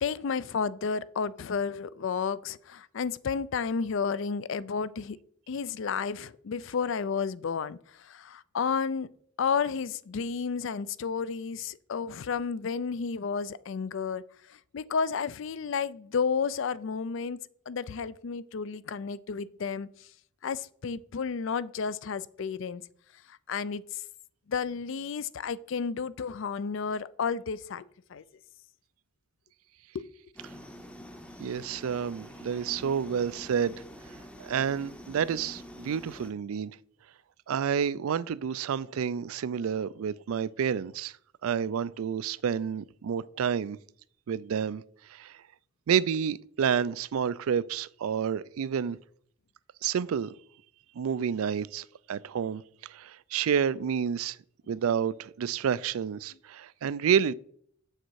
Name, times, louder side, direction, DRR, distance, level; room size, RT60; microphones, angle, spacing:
voice 1, 0.0-5.2 5.5-9.1 9.4-14.2 14.5-17.4 17.7-19.9 20.4-22.8 23.3-24.0 24.5-28.2 29.9-30.1, left 5 dB, 60° left, 0.4 m, -32 dB
sound 1, 30.4-36.3, equal, 5° left, 0.7 m, -46 dB
voice 2, 31.4-33.7 34.4-36.8 37.5-41.1 41.4-43.8 44.3-44.8 45.1-45.4 45.9-49.0 49.8-50.3 51.0-54.4 54.7-57.3, right 7 dB, 85° right, 0.4 m, -29 dB
7.3 x 6.6 x 4.6 m
head